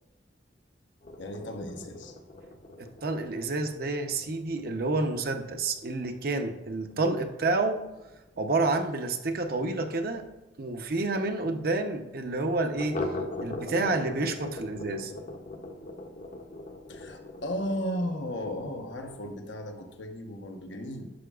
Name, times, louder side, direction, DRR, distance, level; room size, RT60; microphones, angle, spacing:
sound 1, 1.0-10.3 10.6-10.7 11.0-11.1 11.5-11.6 12.7-19.5, left 2 dB, 45° left, 0.7 m, -41 dB
voice 1, 1.2-2.2 16.9-21.1, equal, 85° left, 4 dB, 1.0 m, -35 dB
voice 2, 2.8-7.8 8.4-10.2 10.6-13.0 13.4-15.1, right 3 dB, 55° right, 6 dB, 0.7 m, -29 dB
11.5 x 6.9 x 2.4 m, 1.1 s
head